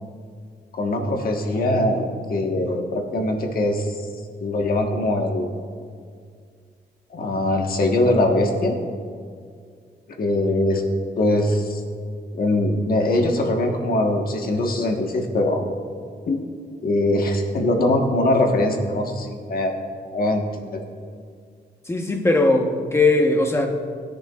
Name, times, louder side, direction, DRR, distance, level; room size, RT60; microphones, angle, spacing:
voice 1, 0.7-4.0 4.4-5.5 7.1-8.8 10.2-10.8 11.2-11.8 12.3-15.6 16.3-16.4 16.8-19.8 20.1-20.4 20.7-20.8, left 1 dB, 55° left, 2 dB, 1.4 m, -22 dB
voice 2, 21.9-23.7, left 2 dB, 15° left, 2 dB, 1.1 m, -19 dB
20.0 x 10.5 x 2.4 m, 2.1 s
wide cardioid pair, 155°, 18 cm